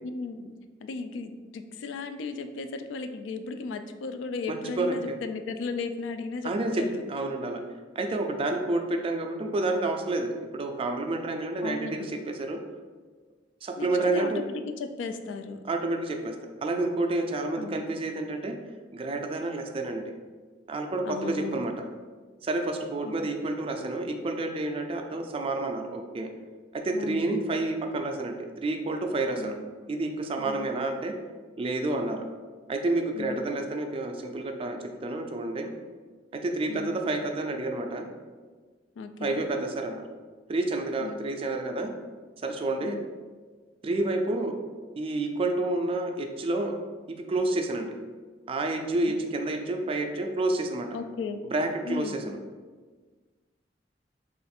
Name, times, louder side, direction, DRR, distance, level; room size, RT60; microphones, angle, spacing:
voice 1, 0.0-0.5 0.8-7.0 11.6-12.1 13.8-15.6 17.6-18.0 21.0-21.6 23.0-23.3 26.9-27.4 29.4-29.5 30.4-30.7 33.1-33.4 36.7-37.0 39.0-39.4 41.0-41.2 42.8-43.1 49.1-49.2 50.9-51.4 51.8-52.2, left 4 dB, 85° left, 8 dB, 0.3 m, -36 dB
voice 2, 4.5-5.2 6.4-6.8 7.1-7.6 7.9-12.6 13.6-14.4 15.7-16.4 16.6-18.5 18.9-20.0 20.7-21.9 22.4-26.3 26.7-29.6 29.9-31.1 31.6-32.3 32.7-35.7 36.3-38.1 39.2-40.0 40.5-41.9 42.4-43.0 43.8-44.5 45.0-46.7 47.3-47.9 48.5-50.9 51.5-52.4, right 2 dB, 30° right, 4 dB, 0.3 m, -29 dB
3.2 x 2.4 x 4.2 m, 1.4 s
head